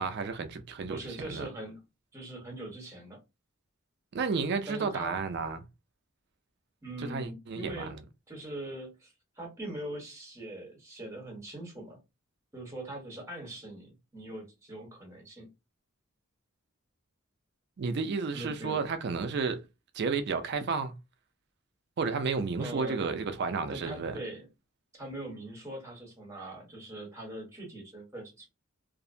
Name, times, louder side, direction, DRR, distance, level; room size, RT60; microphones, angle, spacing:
voice 1, 0.0-1.5 4.1-5.6 7.0-8.0 17.8-19.6 19.9-20.9 22.0-24.2, right 5 dB, 55° right, 0.4 m, -32 dB
voice 2, 0.8-1.8 2.1-3.2 4.7-5.2 6.8-7.9 8.3-12.0 12.5-15.5 18.3-18.8 22.6-23.0 23.7-24.5 24.9-28.5, right 1 dB, 15° right, 1.0 m, -42 dB
2.5 x 2.0 x 2.6 m
head